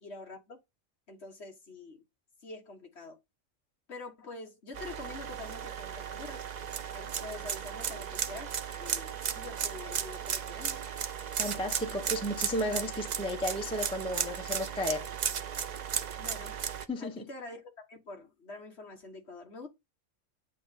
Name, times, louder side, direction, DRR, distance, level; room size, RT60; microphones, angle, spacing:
voice 1, 0.0-0.6 1.1-2.0 2.4-3.2 3.9-6.5 6.9-8.5 8.8-10.9 16.2-16.6 17.0-17.6 17.9-19.7, left 3 dB, 55° left, 1.7 m, -46 dB
sound 1, 4.7-16.9, right 8 dB, 70° right, 0.4 m, -35 dB
voice 2, 11.4-15.1 16.9-17.3, left 1 dB, 5° left, 0.8 m, -33 dB
7.8 x 3.0 x 5.2 m
omnidirectional pair, 1.4 m